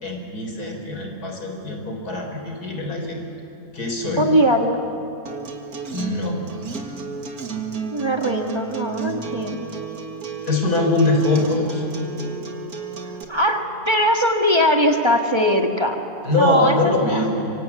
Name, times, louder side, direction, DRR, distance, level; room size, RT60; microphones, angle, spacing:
voice 1, 0.0-3.2 3.7-4.3 5.9-6.4 10.5-11.8 16.2-17.4, left 2 dB, 90° left, 2 dB, 4.4 m, -22 dB
voice 2, 4.2-4.8 7.9-9.7 13.3-16.0 16.4-17.2, equal, 20° right, 3 dB, 1.7 m, -20 dB
Acoustic guitar, 5.3-13.2, right 5 dB, 70° right, 2.4 m, -32 dB
26.0 x 24.5 x 8.3 m, 2.7 s
omnidirectional pair, 1.6 m